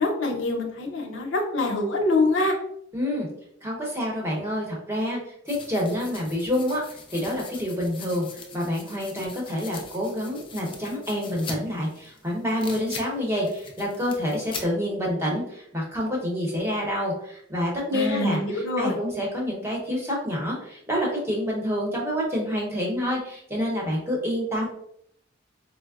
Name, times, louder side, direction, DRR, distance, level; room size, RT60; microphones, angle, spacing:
voice 1, 0.0-2.5 17.9-19.0, left 2 dB, 85° left, 2 dB, 0.7 m, -25 dB
voice 2, 2.9-3.3 3.6-5.2 5.4-6.8 7.1-18.4 18.8-24.7, equal, 15° right, -3 dB, 0.8 m, -27 dB
sound 1, 5.5-14.6, left 4 dB, 25° left, 0.4 m, -42 dB
4.3 x 2.0 x 2.3 m, 0.69 s
head